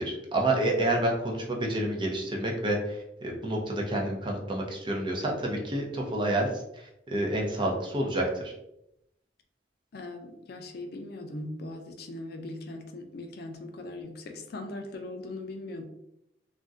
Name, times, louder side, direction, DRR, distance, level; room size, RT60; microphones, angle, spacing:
voice 1, 0.0-8.5, right 1 dB, 25° right, -1 dB, 0.5 m, -29 dB
voice 2, 9.9-15.8, left 2 dB, 55° left, 5 dB, 0.4 m, -40 dB
2.6 x 2.1 x 3.5 m, 0.81 s
head